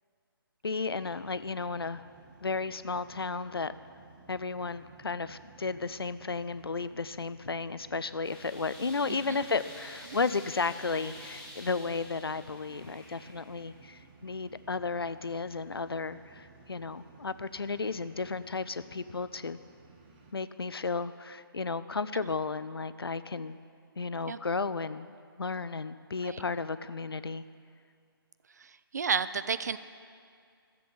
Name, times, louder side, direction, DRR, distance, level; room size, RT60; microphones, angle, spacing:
voice 1, 0.6-2.0 2.4-3.7 4.3-19.6 20.3-23.6 24.0-25.1 25.4-27.4, left 4 dB, 75° left, 14 dB, 0.5 m, -33 dB
sound 1, 1.0-20.3, right 4 dB, 25° right, 1.1 m, -57 dB
sound 2, 8.2-13.9, left 1 dB, 5° left, 1.7 m, -49 dB
voice 2, 9.1-9.4 10.1-10.2 24.3-24.4 26.2-26.4 28.6-29.8, right 6 dB, 45° right, 14 dB, 0.4 m, -32 dB
14.0 x 7.6 x 6.8 m, 2.3 s
figure-of-eight pair, 145°, 13 cm